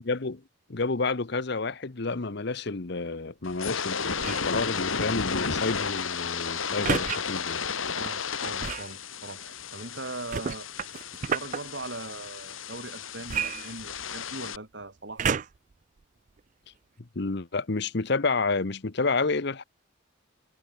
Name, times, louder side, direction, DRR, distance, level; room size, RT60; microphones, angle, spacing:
voice 1, 0.1-0.4 0.7-7.6 17.1-19.6, left 3 dB, 55° left, 0.9 m, -29 dB
sound 1, 3.4-14.6, left 5 dB, 85° left, 2.6 m, -33 dB
sound 2, 4.1-4.5 6.8-7.2 8.6-8.9 10.3-11.6 13.3-14.2 15.2-15.7 16.4-16.5, right 6 dB, 40° right, 0.4 m, -30 dB
voice 2, 7.9-10.7 11.3-15.4, right 2 dB, 60° right, 3.1 m, -40 dB
head